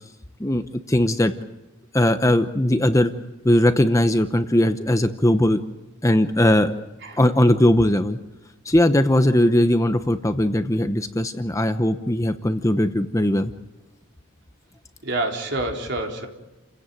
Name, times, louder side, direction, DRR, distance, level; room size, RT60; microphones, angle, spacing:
voice 1, 0.4-1.3 1.9-3.1 3.4-5.6 6.0-6.7 7.2-8.2 8.6-13.5, left 1 dB, 15° left, 8 dB, 0.9 m, -19 dB
voice 2, 15.0-16.3, right 2 dB, 50° right, 2 dB, 3.9 m, -27 dB
29.5 x 16.5 x 9.2 m, 1.1 s
head